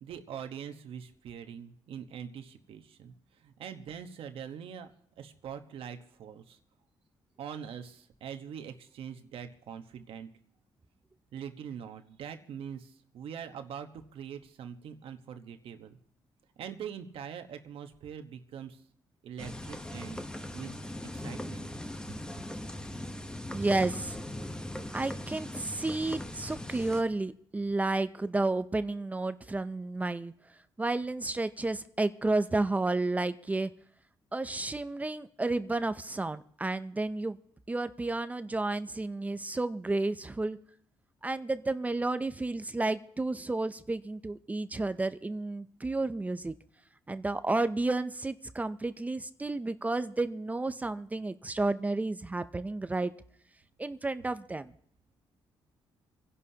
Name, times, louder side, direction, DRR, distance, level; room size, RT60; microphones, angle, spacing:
voice 1, 0.0-3.1 3.4-4.9 5.2-6.6 7.4-10.3 11.3-16.0 16.6-18.8 19.2-20.2 20.5-20.8 21.1-21.7, right 8 dB, 75° right, 7 dB, 1.1 m, -43 dB
sound 1, 19.4-27.0, left 1 dB, 10° left, 0.9 m, -40 dB
voice 2, 23.5-24.2 24.9-30.3 30.8-33.7 34.3-37.4 37.7-40.6 41.2-46.5 47.1-53.1 53.8-54.7, right 2 dB, 15° right, 12 dB, 0.5 m, -31 dB
28.0 x 11.0 x 2.8 m, 0.64 s
cardioid pair, 115°, 9 cm